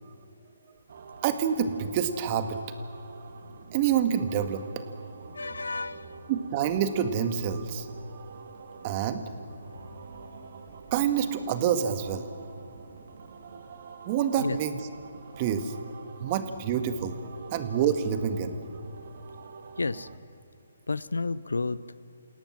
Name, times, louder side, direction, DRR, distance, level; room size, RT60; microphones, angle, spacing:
sound 1, 0.9-20.2, right 4 dB, 55° right, 2.1 m, -46 dB
voice 1, 1.2-2.6 3.7-4.6 6.3-7.9 8.8-9.2 10.9-12.3 14.0-14.8 15.4-15.7 16.2-17.2 17.5-18.6, right 8 dB, 30° right, 9 dB, 1.8 m, -27 dB
voice 2, 5.3-6.2 14.4-14.6 19.8-20.1 20.9-21.8, left 3 dB, 80° left, 19 dB, 0.8 m, -31 dB
28.5 x 17.5 x 7.5 m, 2.6 s
figure-of-eight pair, 140°, 0 cm